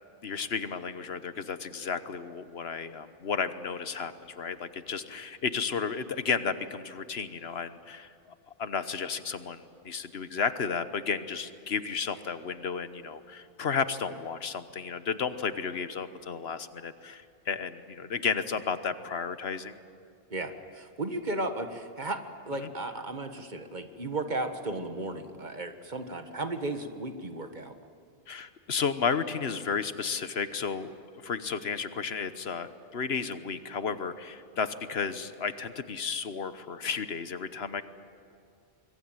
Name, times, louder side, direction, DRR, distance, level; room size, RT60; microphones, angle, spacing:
voice 1, 0.2-19.7 28.3-30.9 31.2-37.8, left 6 dB, 75° left, 11 dB, 1.3 m, -33 dB
voice 2, 20.3-27.7, right 2 dB, 45° right, 7 dB, 1.6 m, -35 dB
26.0 x 22.0 x 9.0 m, 2.3 s
omnidirectional pair, 1.1 m